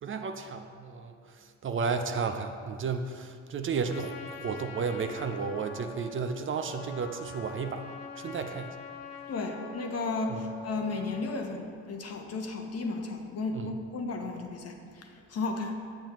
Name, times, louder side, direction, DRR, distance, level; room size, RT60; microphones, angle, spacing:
voice 1, 0.0-8.7 10.3-10.4 13.5-13.8, right 5 dB, 40° right, 7 dB, 0.5 m, -33 dB
Trumpet, 3.8-11.4, left 3 dB, 75° left, 0.7 m, -44 dB
voice 2, 9.3-15.8, left 3 dB, 50° left, 3 dB, 1.0 m, -34 dB
7.6 x 7.0 x 3.0 m, 2.2 s
hypercardioid pair, 50°, 33 cm